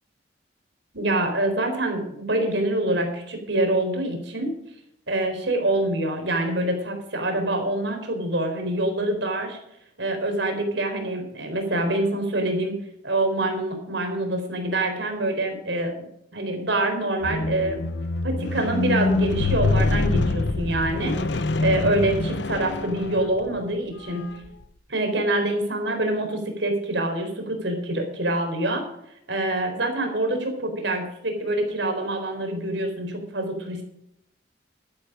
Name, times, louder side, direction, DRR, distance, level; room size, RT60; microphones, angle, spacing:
voice 1, 0.9-4.5 5.1-9.6 10.0-12.7 13.0-17.8 18.2-24.3 24.9-28.9 29.3-33.8, right 1 dB, 80° right, 4 dB, 4.2 m, -25 dB
Squeak, 17.2-23.6 24.3-24.5, left 3 dB, 70° left, 0.8 m, -25 dB
12.5 x 11.5 x 5.1 m, 0.76 s
head